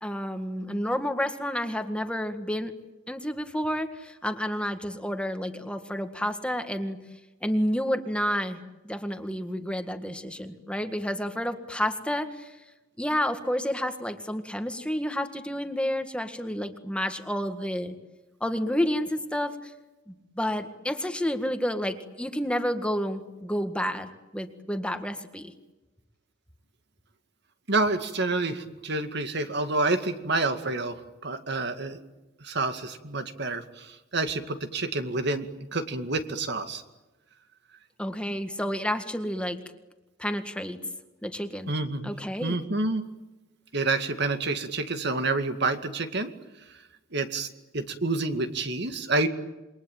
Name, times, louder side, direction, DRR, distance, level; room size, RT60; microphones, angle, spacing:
voice 1, 0.0-2.7 3.1-7.0 7.4-8.6 8.8-12.5 13.0-18.0 18.4-19.7 20.1-25.5 38.0-39.6 40.2-40.8 41.2-41.7 42.0-42.6, equal, 5° left, 7 dB, 1.8 m, -30 dB
voice 2, 27.7-31.0 31.2-32.0 32.4-35.5 35.7-36.8 41.7-42.1 42.4-43.0 43.7-46.3 47.1-47.5 47.7-49.3, right 3 dB, 60° right, 8 dB, 2.2 m, -28 dB
28.0 x 22.5 x 9.2 m, 1.0 s
head